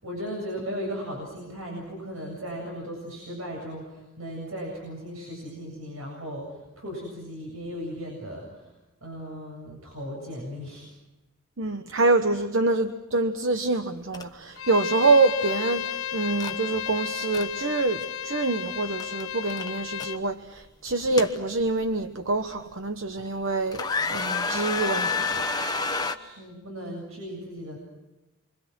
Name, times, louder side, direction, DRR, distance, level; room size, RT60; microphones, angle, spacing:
voice 1, 0.0-8.7 9.0-10.9 26.2-27.8, equal, 85° right, -1 dB, 7.8 m, -37 dB
voice 2, 11.6-25.5, right 3 dB, 65° right, 8 dB, 1.0 m, -26 dB
sound 1, 14.1-14.2 14.6-14.8 16.4-16.6 17.1-17.4 19.0-19.2 19.5-20.1 20.9-21.9 22.5-22.6 23.2-23.4 23.7-26.2, left 4 dB, 20° left, 1.1 m, -29 dB
Bowed string instrument, 14.6-20.2, left 9 dB, 85° left, 1.0 m, -33 dB
28.5 x 25.0 x 6.2 m, 1.0 s
head